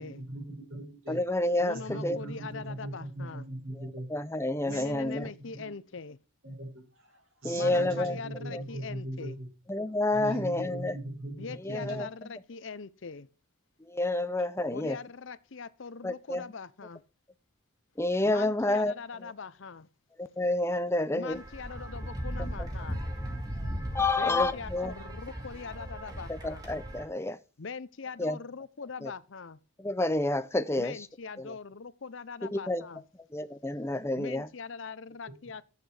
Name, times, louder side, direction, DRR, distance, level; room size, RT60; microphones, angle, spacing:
voice 1, 0.0-1.2 1.7-4.1 4.7-5.7 6.4-9.5 10.1-12.0 35.3-35.4, right 1 dB, 70° right, 7.1 m, -40 dB
voice 2, 1.1-2.2 3.7-5.3 7.4-8.2 8.5-8.6 9.7-11.0 11.6-12.1 13.8-15.0 16.0-16.4 18.0-18.9 19.2-19.3 20.2-21.4 22.6-22.7 23.9-25.0 26.3-27.4 28.2-28.4 29.0-29.1 29.8-31.1 31.4-31.5 32.4-32.9 33.3-34.5, left 2 dB, 10° left, 0.6 m, -29 dB
voice 3, 1.6-3.5 4.6-6.2 7.5-9.4 11.4-13.3 14.7-17.0 18.2-19.9 21.1-23.0 24.2-26.6 27.6-29.6 30.8-33.0 34.2-35.6, left 5 dB, 60° left, 0.6 m, -42 dB
sound 1, 21.3-27.1, equal, 20° right, 2.3 m, -37 dB
13.5 x 8.3 x 4.9 m
head